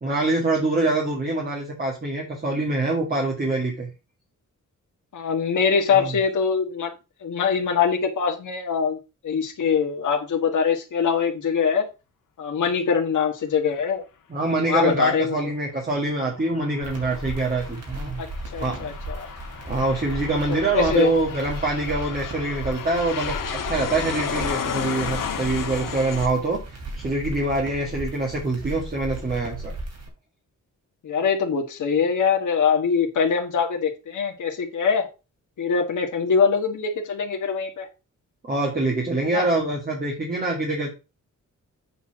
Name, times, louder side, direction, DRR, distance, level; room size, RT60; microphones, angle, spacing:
voice 1, 0.0-3.9 5.9-6.1 14.3-18.2 18.6-18.9 19.7-26.6 27.0-29.7 38.4-40.9, right 2 dB, 30° right, 2.1 m, -25 dB
voice 2, 5.1-6.9 7.2-9.0 9.2-11.9 12.4-14.0 14.7-15.3 18.2-18.3 18.5-19.3 20.6-21.1 25.8-26.0 31.0-35.1 35.6-37.9 39.2-39.5, left 6 dB, 70° left, 1.6 m, -23 dB
Aircraft, 16.1-26.3, left 7 dB, 85° left, 1.6 m, -33 dB
sound 1, 16.8-30.1, right 2 dB, 55° right, 3.2 m, -36 dB
8.1 x 4.2 x 5.9 m
wide cardioid pair, 160°, 32 cm